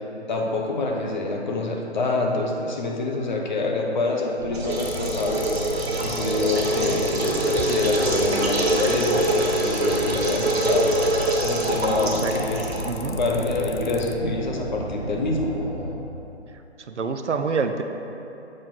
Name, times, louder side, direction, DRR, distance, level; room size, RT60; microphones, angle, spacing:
voice 1, 0.3-5.4 6.0-10.9 11.4-12.6 13.2-15.5, left 3 dB, 40° left, 0 dB, 0.8 m, -26 dB
sound 1, 4.4-15.9, equal, 15° right, 1.2 m, -34 dB
sound 2, 4.5-13.1, right 2 dB, 60° right, 1.1 m, -25 dB
sound 3, 4.7-14.1, left 6 dB, 75° left, 0.5 m, -39 dB
voice 2, 12.0-12.4 12.8-13.2 16.8-17.8, right 5 dB, 80° right, 6 dB, 0.6 m, -27 dB
7.6 x 2.9 x 5.8 m, 2.9 s
figure-of-eight pair, 145°, 34 cm